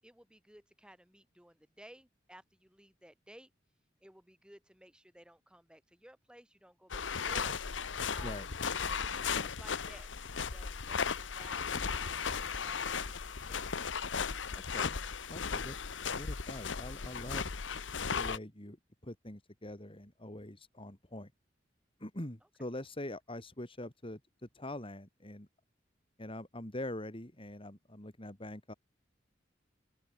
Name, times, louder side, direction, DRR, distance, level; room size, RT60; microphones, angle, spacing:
voice 1, 0.0-3.5 4.0-7.8 8.1-8.4 8.7-13.7 22.6-22.7, right 1 dB, 5° right, 7.6 m, -57 dB
sound 1, 6.9-18.4, left 6 dB, 85° left, 1.0 m, -36 dB
voice 2, 14.5-15.0 15.3-15.8 16.1-17.4 18.2-18.8 19.0-21.3 22.0-25.5 26.2-28.7, left 1 dB, 30° left, 3.4 m, -44 dB
open air
head